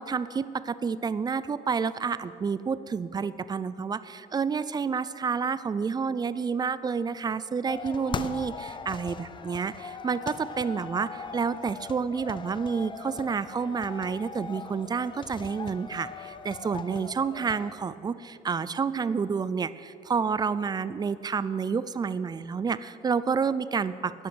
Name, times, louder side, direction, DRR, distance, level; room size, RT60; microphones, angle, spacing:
voice 1, 0.0-24.1, right 5 dB, 25° right, 16 dB, 0.4 m, -29 dB
sound 1, 7.7-17.7, left 5 dB, 30° left, 0.5 m, -40 dB
11.0 x 11.0 x 6.2 m, 2.8 s
cardioid pair, 110°, 17 cm